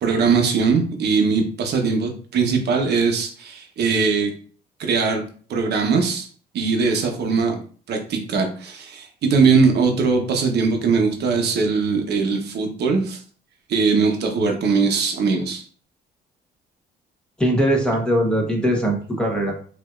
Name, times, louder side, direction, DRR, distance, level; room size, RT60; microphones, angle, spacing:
voice 1, 0.0-4.3 4.8-5.2 5.5-6.3 6.5-7.6 7.9-13.2 13.7-15.6, right 4 dB, 65° right, 3 dB, 1.0 m, -20 dB
voice 2, 17.4-19.5, equal, 5° left, -1 dB, 1.0 m, -20 dB
5.2 x 2.7 x 2.4 m, 0.43 s
cardioid pair, 110°, 18 cm